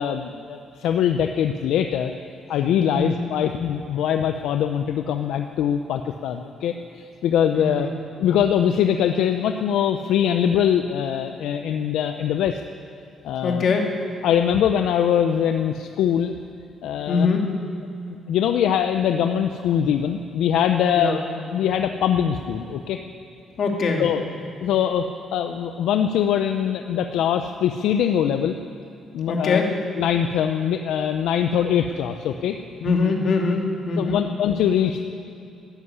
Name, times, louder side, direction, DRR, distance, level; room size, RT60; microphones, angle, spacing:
voice 1, 0.0-2.1 2.5-7.9 8.2-12.6 13.2-13.6 14.2-16.3 16.8-17.3 18.3-21.2 21.5-23.0 24.0-24.2 24.6-25.0 25.3-28.6 29.1-29.6 30.0-32.6 34.0-35.0, left 9 dB, 85° left, 7 dB, 0.6 m, -22 dB
voice 2, 2.9-3.2 7.5-7.9 13.4-13.9 17.1-17.5 20.9-21.2 23.6-24.1 29.3-29.7 32.8-34.2, left 4 dB, 60° left, 1 dB, 2.5 m, -22 dB
13.0 x 11.0 x 9.7 m, 2.7 s
cardioid pair, 90°, 0 cm